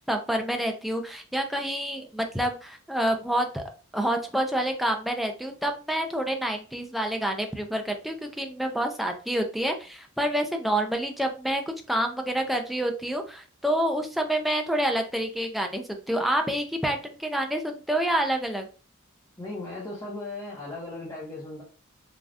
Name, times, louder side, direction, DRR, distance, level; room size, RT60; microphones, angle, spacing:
voice 1, 0.1-3.6 3.9-18.7, right 1 dB, ahead, 0.3 m, -28 dB
voice 2, 19.4-21.6, left 2 dB, 15° left, 0.8 m, -37 dB
3.3 x 2.3 x 2.5 m
head